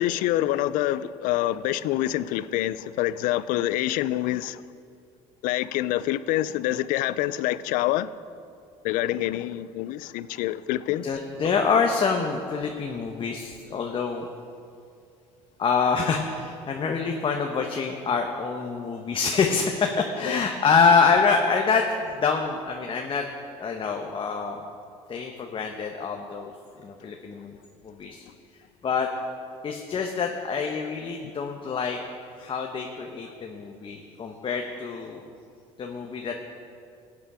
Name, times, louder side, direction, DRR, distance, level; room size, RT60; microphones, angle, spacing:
voice 1, 0.0-4.6 5.4-8.1 8.8-11.1 20.2-20.4, left 14 dB, 75° left, 0.5 m, -26 dB
voice 2, 11.0-14.3 15.6-23.3 23.6-24.6 25.1-26.5 26.8-27.6 27.8-28.2 28.8-29.1 29.6-32.0 32.4-35.2 35.8-36.3, left 5 dB, 40° left, 1.1 m, -26 dB
16.0 x 8.5 x 4.9 m
supercardioid pair, 85°, 14 cm